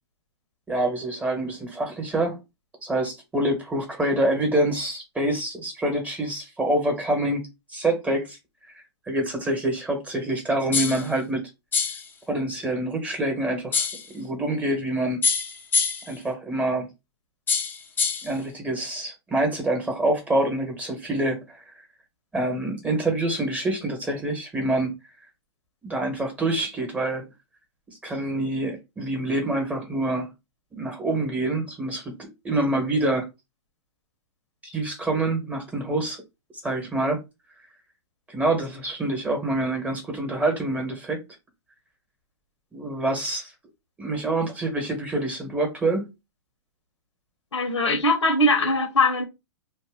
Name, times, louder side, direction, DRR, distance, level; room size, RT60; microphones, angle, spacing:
voice 1, 0.7-2.4 2.8-7.4 7.7-8.4 9.1-11.4 12.3-13.9 14.1-15.2 16.1-16.9 18.2-21.6 22.3-24.9 25.8-27.2 27.9-30.3 30.7-33.3 34.6-36.2 36.6-37.2 38.3-41.2 42.7-43.5 44.0-46.1, right 1 dB, 10° right, 1.1 m, -26 dB
sound 1, 10.7-11.1 11.7-12.1 13.7-14.1 15.2-16.1 17.5-18.3, left 5 dB, 15° left, 0.6 m, -25 dB
voice 2, 47.5-49.2, left 1 dB, 85° left, 1.1 m, -21 dB
2.7 x 2.2 x 3.5 m
hypercardioid pair, 125°, 15 cm